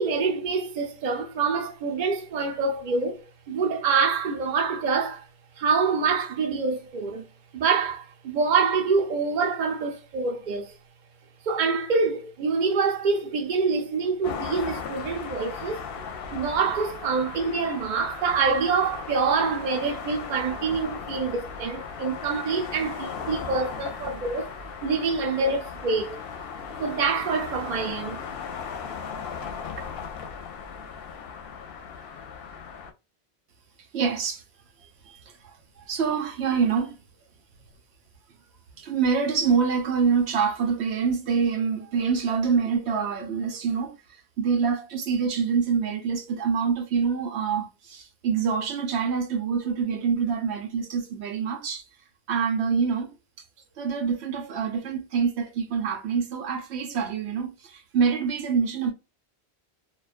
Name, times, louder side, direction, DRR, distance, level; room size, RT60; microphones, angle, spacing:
voice 1, 0.0-5.2 5.6-7.2 7.5-10.7 11.4-15.8 16.3-24.5 24.8-26.2 26.8-28.2 29.8-29.9, right 5 dB, 50° right, 0.7 m, -26 dB
sound 1, 14.2-32.9, left 6 dB, 65° left, 0.7 m, -37 dB
voice 2, 33.9-34.4 34.8-37.0 38.8-51.9 52.3-53.1 53.8-58.9, right 6 dB, 85° right, 0.9 m, -26 dB
2.3 x 2.2 x 2.3 m
omnidirectional pair, 1.1 m